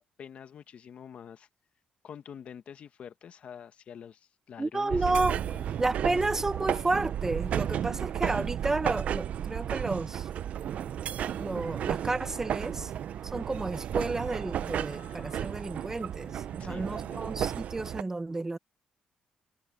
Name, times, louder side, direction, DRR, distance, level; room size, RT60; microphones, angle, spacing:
voice 1, 0.0-1.5 2.0-5.6 16.6-17.3, left 8 dB, 60° left, 1.4 m, -46 dB
voice 2, 4.6-5.4 5.8-10.3 11.4-12.9 13.2-18.6, right 2 dB, 20° right, 1.4 m, -31 dB
sound 1, 4.9-18.0, right 10 dB, 70° right, 0.7 m, -33 dB
sound 2, 11.1-17.3, left 12 dB, 90° left, 5.8 m, -62 dB
cardioid pair, 90°, 2 cm